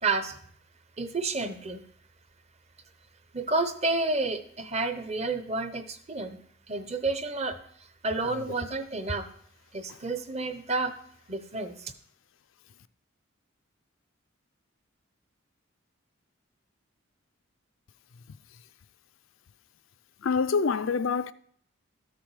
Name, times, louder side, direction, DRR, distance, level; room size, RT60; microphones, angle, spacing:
voice 1, 0.0-0.4 1.0-1.8 3.3-6.4 6.7-9.3 9.7-11.0 11.3-11.9, right 3 dB, 30° right, 0.8 m, -30 dB
voice 2, 20.2-21.3, left 5 dB, 70° left, 0.4 m, -26 dB
13.0 x 7.0 x 4.8 m
head